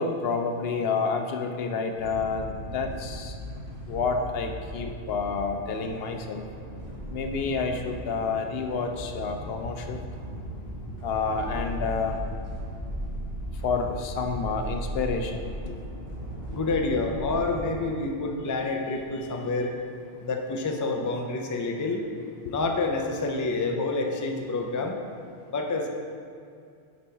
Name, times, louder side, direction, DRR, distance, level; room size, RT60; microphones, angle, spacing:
voice 1, 0.0-3.3 3.9-6.4 7.1-10.0 11.0-12.2 13.6-15.8 22.4-22.5, left 4 dB, 70° left, 5 dB, 0.8 m, -29 dB
sound 1, 2.0-17.7, equal, 60° right, 1.4 m, -37 dB
voice 2, 16.5-19.7 20.2-22.0 22.5-25.0 25.5-25.9, left 3 dB, 25° left, 2 dB, 0.4 m, -28 dB
6.9 x 5.3 x 4.5 m, 2.4 s
omnidirectional pair, 1.1 m